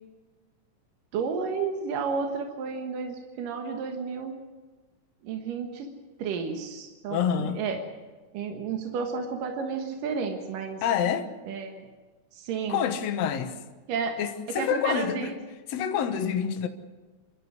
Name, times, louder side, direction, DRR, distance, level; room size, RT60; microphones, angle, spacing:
voice 1, 1.1-4.3 5.2-5.9 6.2-7.8 8.3-10.9 11.4-11.9 12.3-12.8 13.9-14.2 14.5-15.4 15.8-15.9, right 5 dB, 80° right, 3.2 m, -32 dB
voice 2, 7.1-7.6 10.8-11.3 12.7-13.5 14.2-15.3 15.7-16.7, left 8 dB, 60° left, 2.2 m, -27 dB
26.5 x 13.0 x 9.7 m
omnidirectional pair, 3.8 m